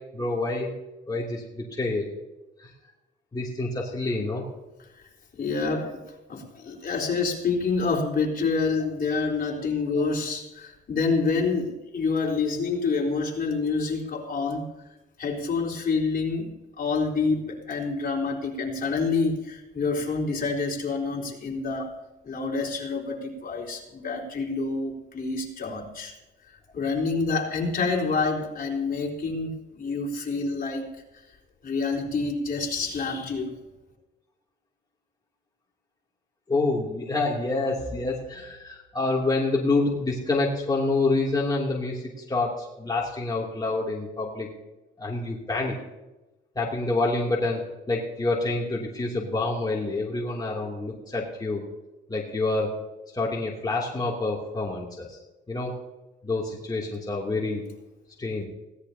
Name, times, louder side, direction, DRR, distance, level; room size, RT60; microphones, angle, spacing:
voice 1, 0.1-0.7 1.1-2.1 2.6-2.7 3.3-4.4 9.9-10.1 36.5-44.5 45.0-45.7 46.5-51.6 52.1-52.7 53.1-55.2 55.5-55.7 56.2-57.7 58.2-58.4, left 2 dB, 20° left, -3 dB, 2.9 m, -27 dB
voice 2, 4.9-14.7 15.2-22.0 22.2-26.1 26.5-30.8 31.6-33.5, left 4 dB, 45° left, -1 dB, 4.2 m, -27 dB
21.0 x 17.0 x 2.9 m, 1.1 s
cardioid pair, 90°, 20 cm